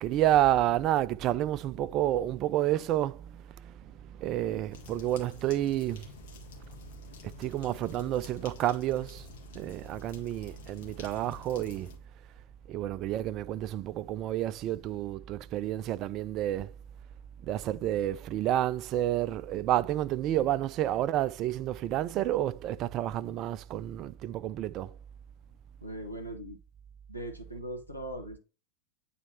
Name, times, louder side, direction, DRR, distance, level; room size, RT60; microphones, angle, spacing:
voice 1, 0.0-6.1 7.2-9.3 9.5-11.9 12.7-16.7 17.4-24.9, right 13 dB, 35° right, 0.3 m, -30 dB
sound 1, 4.7-12.0, left 6 dB, 55° left, 1.7 m, -50 dB
voice 2, 25.8-26.6 27.1-28.4, right 1 dB, 85° left, 0.9 m, -39 dB
8.8 x 4.2 x 2.8 m
figure-of-eight pair, 90°, 0 cm